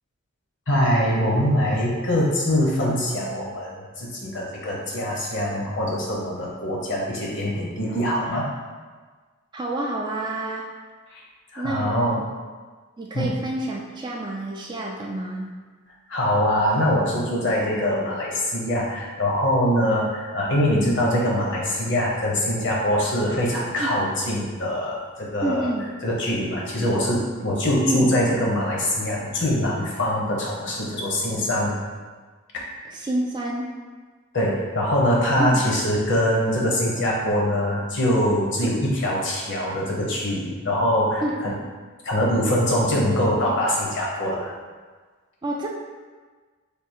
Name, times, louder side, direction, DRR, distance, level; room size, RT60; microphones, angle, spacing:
voice 1, 0.7-8.5 11.1-11.2 11.5-12.2 13.1-13.3 16.1-25.7 26.0-31.7 34.3-41.5 42.0-44.5, equal, 55° left, -3 dB, 0.8 m, -23 dB
voice 2, 9.5-10.7 11.6-12.3 13.0-15.5 23.8-24.0 25.4-25.9 27.9-28.1 32.8-33.7 35.4-35.6 38.6-38.7 41.2-41.6 45.4-45.7, right 1 dB, 20° right, -1 dB, 0.3 m, -28 dB
3.4 x 2.3 x 4.5 m, 1.4 s
head